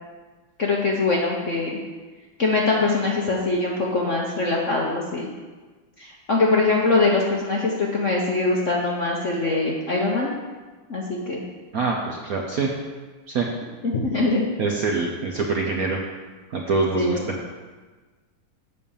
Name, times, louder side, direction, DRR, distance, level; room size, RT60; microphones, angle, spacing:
voice 1, 0.6-1.8 2.4-5.3 6.0-10.3 10.9-11.4 13.8-14.4 16.9-17.2, left 3 dB, 50° left, -2 dB, 0.9 m, -22 dB
voice 2, 11.7-12.7 13.3-13.5 14.6-16.0 16.5-17.2, right 4 dB, 60° right, 0 dB, 1.0 m, -24 dB
8.3 x 5.5 x 7.1 m, 1.4 s
omnidirectional pair, 2.4 m